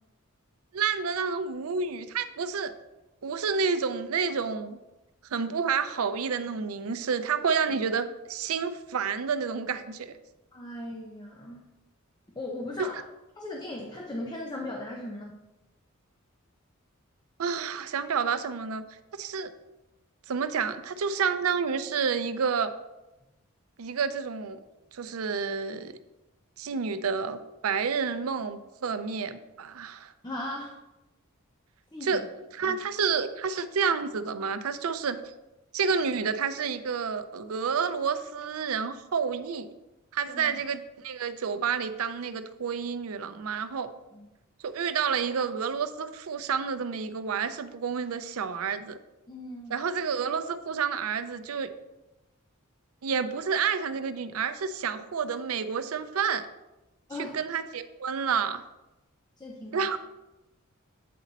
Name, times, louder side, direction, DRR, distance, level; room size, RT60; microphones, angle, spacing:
voice 1, 0.7-2.7 3.2-4.8 5.3-10.2 17.4-18.8 19.1-19.5 20.3-22.7 23.8-24.6 24.9-26.0 26.6-30.1 32.0-32.2 32.5-35.2 35.7-39.7 40.1-43.9 44.6-49.0 49.7-51.7 53.0-56.5 57.2-58.6 59.7-60.0, right 6 dB, 80° right, 11 dB, 0.5 m, -29 dB
voice 2, 10.5-11.7 12.3-13.0 13.4-15.4 30.2-30.8 31.9-32.3 32.6-32.8 40.3-40.6 44.1-44.3 49.3-49.8 57.1-57.4 59.4-60.0, left 1 dB, 20° left, 0 dB, 0.6 m, -38 dB
8.5 x 4.1 x 4.0 m, 1.0 s
head